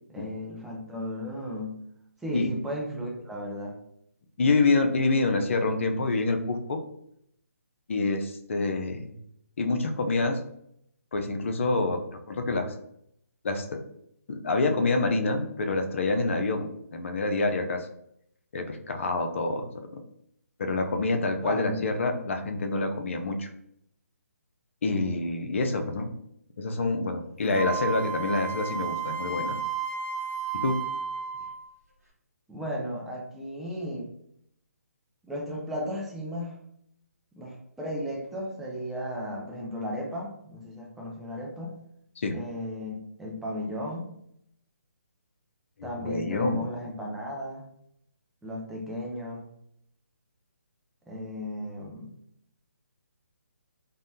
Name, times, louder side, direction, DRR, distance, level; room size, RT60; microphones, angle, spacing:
voice 1, 0.1-1.8 2.2-3.8 21.4-21.8 22.1-22.2 32.5-34.1 35.2-36.6 37.4-41.8 42.3-44.1 45.8-47.6 48.4-49.4 51.1-52.1, equal, 5° right, -3 dB, 0.4 m, -35 dB
voice 2, 4.4-6.8 7.9-9.1 9.6-10.4 11.1-12.0 12.3-12.7 13.4-13.8 14.3-17.9 18.5-19.7 20.6-23.5 24.8-26.1 26.6-29.6 30.5-30.8 42.2-42.3 45.8-46.7, left 3 dB, 55° left, 6 dB, 0.5 m, -27 dB
Wind instrument woodwind instrument, 27.5-31.7, right 6 dB, 80° right, 1.0 m, -32 dB
3.3 x 2.1 x 2.6 m, 0.74 s
figure-of-eight pair, 145°, 8 cm